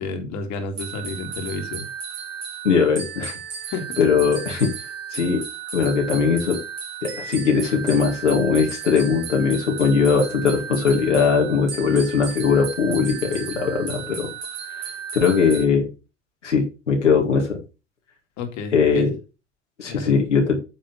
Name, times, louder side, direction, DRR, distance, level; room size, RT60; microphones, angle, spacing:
voice 1, 0.0-1.8 3.7-4.0 18.4-19.1 19.9-20.1, left 4 dB, 50° left, 4 dB, 2.3 m, -31 dB
sound 1, 0.8-15.7, right 7 dB, 45° right, 3.6 m, -34 dB
voice 2, 2.6-3.3 4.0-4.7 5.1-5.4 5.7-6.6 7.0-14.3 15.1-15.9 16.4-17.6 18.7-19.1 19.8-20.6, left 5 dB, 85° left, 0 dB, 2.2 m, -20 dB
8.9 x 4.3 x 5.5 m, 0.30 s
figure-of-eight pair, 75°, 35 cm